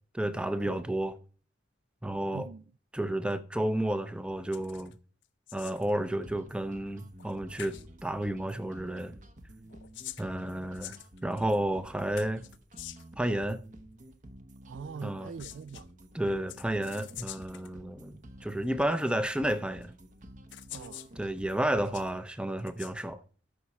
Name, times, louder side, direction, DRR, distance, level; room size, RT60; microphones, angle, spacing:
voice 1, 0.1-1.1 2.0-2.5 2.9-5.0 5.5-9.1 10.2-11.0 11.2-12.4 13.2-13.6 15.0-15.3 16.1-19.9 21.2-23.2, right 1 dB, 5° right, 0.6 m, -31 dB
voice 2, 2.3-2.6 14.7-15.9 20.7-21.0, right 6 dB, 85° right, 0.4 m, -42 dB
sound 1, 4.5-4.9 5.2-5.9 7.2-7.3 7.6-7.9 9.6-11.6 12.2-13.2 15.1-15.8 16.5-17.7 18.6-18.7 19.8-19.9 20.5-21.1 21.6-22.1 22.6-22.9, left 14 dB, 75° left, 0.5 m, -46 dB
sound 2, 6.2-22.2, right 1 dB, 40° right, 0.9 m, -51 dB
13.0 x 6.0 x 4.2 m
head